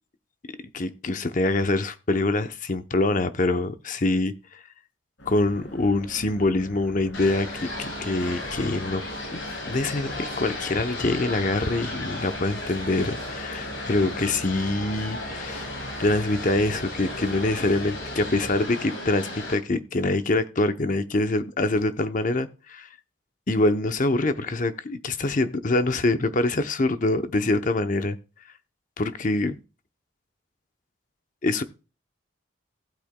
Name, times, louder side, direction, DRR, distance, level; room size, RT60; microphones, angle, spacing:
voice 1, 0.7-4.3 5.3-9.0 9.3-15.7 16.0-22.9 23.5-28.2 29.0-29.6 31.4-31.6, left 2 dB, 40° left, 0.7 m, -25 dB
sound 1, 5.2-18.6, equal, 70° left, 3.2 m, -41 dB
sound 2, 7.1-19.5, left 2 dB, 90° left, 6.4 m, -35 dB
15.5 x 8.5 x 2.2 m
head